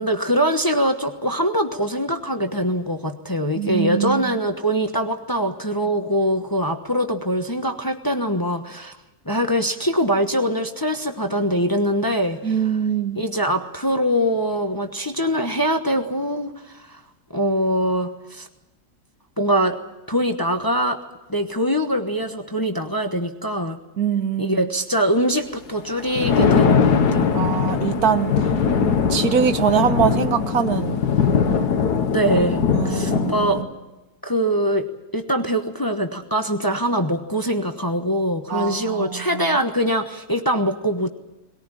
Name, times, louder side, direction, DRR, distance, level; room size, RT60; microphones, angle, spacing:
voice 1, 0.0-9.0 9.2-12.6 13.1-17.0 17.3-18.5 19.4-19.8 20.1-21.0 21.3-23.8 24.4-27.4 32.1-33.6 34.2-34.9 35.1-41.1, equal, 15° left, 6 dB, 1.0 m, -23 dB
voice 2, 3.6-4.3 12.4-13.2 24.0-24.7 27.3-28.3 29.1-31.0 32.7-33.5 38.5-39.5, right 7 dB, 70° right, 10 dB, 1.6 m, -23 dB
Thunder, 25.9-33.6, left 6 dB, 80° left, 1.9 m, -20 dB
20.5 x 18.5 x 9.9 m, 1.0 s
omnidirectional pair, 1.7 m